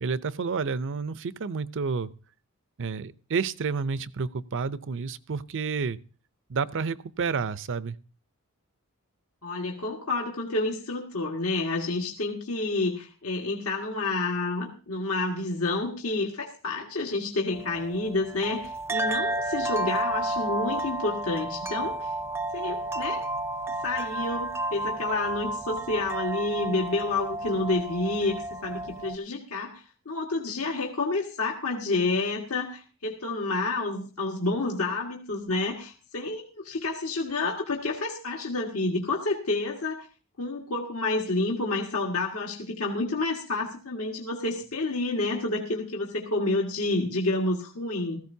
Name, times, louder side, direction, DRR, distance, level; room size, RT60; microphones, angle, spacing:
voice 1, 0.0-2.1 2.8-6.0 6.5-8.0, right 5 dB, 60° right, 0.6 m, -30 dB
voice 2, 9.4-22.1 22.5-23.3 23.8-40.1 40.4-48.2, left 2 dB, 70° left, 1.7 m, -29 dB
sound 1, 17.5-29.2, right 1 dB, 10° right, 0.6 m, -32 dB
16.5 x 15.0 x 2.7 m
head